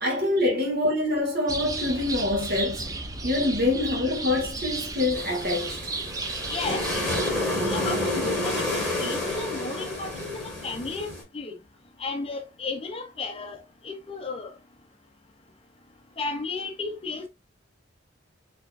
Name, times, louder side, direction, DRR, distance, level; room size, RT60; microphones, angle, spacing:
voice 1, 0.0-3.0 3.2-5.9, left 2 dB, 50° right, 1.7 m, -25 dB
sound 1, 1.5-7.3, right 3 dB, 15° right, 0.4 m, -34 dB
sound 2, 5.1-11.2, left 1 dB, ahead, 2.4 m, -29 dB
voice 2, 6.5-6.8 7.6-11.6 12.0-13.6 13.8-14.5 16.2-17.3, left 3 dB, 30° left, 0.5 m, -34 dB
4.3 x 3.4 x 2.4 m
head